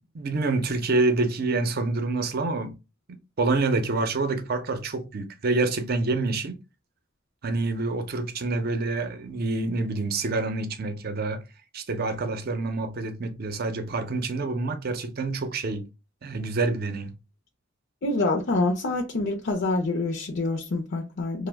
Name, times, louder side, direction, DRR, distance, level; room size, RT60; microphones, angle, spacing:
voice 1, 0.0-2.8 3.1-6.6 7.4-11.4 11.7-15.8 16.2-17.1, right 3 dB, 50° right, 0.5 m, -27 dB
voice 2, 18.0-21.5, left 2 dB, 60° left, 0.5 m, -26 dB
2.9 x 2.0 x 3.3 m
head